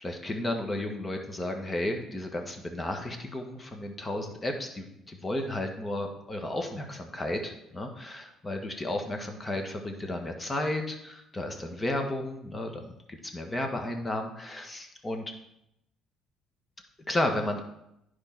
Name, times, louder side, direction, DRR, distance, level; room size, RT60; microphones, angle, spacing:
voice 1, 0.0-15.2 17.1-17.6, left 1 dB, 25° left, 4 dB, 1.6 m, -33 dB
10.5 x 4.9 x 4.5 m, 0.81 s
supercardioid pair, 70°, 0 cm